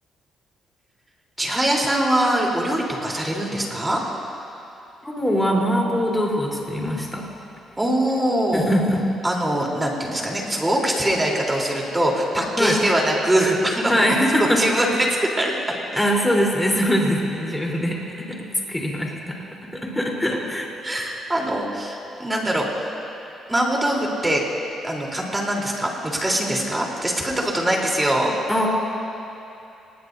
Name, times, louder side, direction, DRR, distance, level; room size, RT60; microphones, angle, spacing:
voice 1, 1.4-4.0 7.8-8.7 9.2-13.9 14.4-15.5 20.8-22.7 23.5-24.4 24.8-28.3, right 1 dB, 15° right, -2 dB, 3.6 m, -22 dB
voice 2, 5.0-7.2 8.5-9.0 12.6-12.8 13.9-14.6 16.0-18.0 18.3-18.4 18.7-19.4 19.8-20.7 28.5-28.7, equal, 10° left, -2 dB, 3.8 m, -22 dB
26.0 x 20.5 x 2.7 m, 2.8 s
cardioid pair, 90°, 0 cm